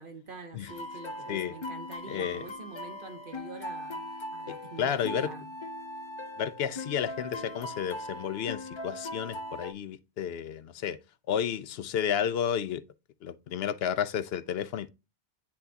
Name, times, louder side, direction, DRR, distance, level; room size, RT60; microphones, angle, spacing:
voice 1, 0.0-5.5, right 4 dB, 55° right, 1.3 m, -45 dB
sound 1, 0.7-9.7, left 1 dB, 35° left, 0.6 m, -40 dB
voice 2, 2.1-2.5 4.5-5.3 6.4-11.0 11.3-12.8 13.2-14.9, left 8 dB, 75° left, 0.8 m, -32 dB
10.0 x 3.4 x 2.8 m
omnidirectional pair, 1.1 m